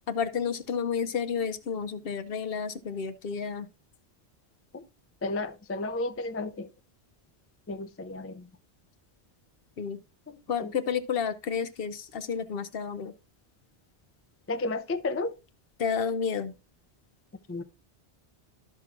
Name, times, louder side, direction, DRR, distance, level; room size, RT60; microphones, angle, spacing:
voice 1, 0.1-3.7 9.8-10.0 10.5-13.1 15.8-16.5, left 6 dB, 60° left, 0.8 m, -31 dB
voice 2, 5.2-6.7 7.7-8.5 10.3-10.7 14.5-15.3 17.5-17.6, left 2 dB, 20° left, 0.3 m, -33 dB
12.5 x 5.9 x 2.4 m
omnidirectional pair, 1.1 m